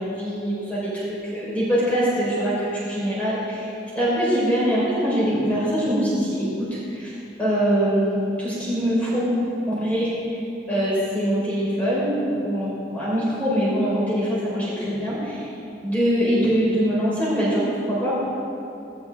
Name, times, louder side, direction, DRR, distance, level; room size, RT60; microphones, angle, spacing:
voice 1, 0.0-6.5 6.9-9.3 9.7-10.4 10.7-15.5 15.8-17.6 17.9-18.2, equal, 10° left, -9 dB, 4.0 m, -23 dB
17.0 x 17.0 x 3.5 m, 2.7 s
head